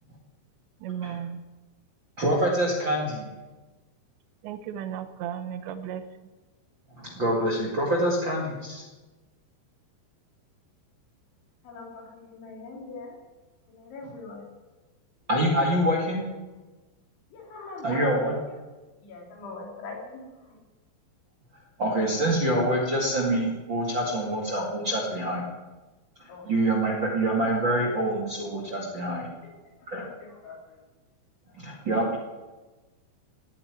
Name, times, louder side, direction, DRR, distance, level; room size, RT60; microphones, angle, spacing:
voice 1, 0.8-1.4 4.4-6.0, right 9 dB, 80° right, 11 dB, 3.0 m, -34 dB
voice 2, 2.2-3.3 7.0-8.8 15.3-16.3 17.8-18.3 21.8-25.4 26.2-29.3 29.9-30.0 31.5-32.2, right 1 dB, 40° right, -2 dB, 1.8 m, -26 dB
voice 3, 11.6-13.2 13.7-14.5 17.3-18.4 19.0-20.6 26.3-26.5 26.8-26.9 30.0-30.8 31.5-31.6, left 3 dB, 85° left, -1 dB, 5.9 m, -42 dB
16.5 x 8.7 x 9.6 m, 1.2 s
omnidirectional pair, 5.2 m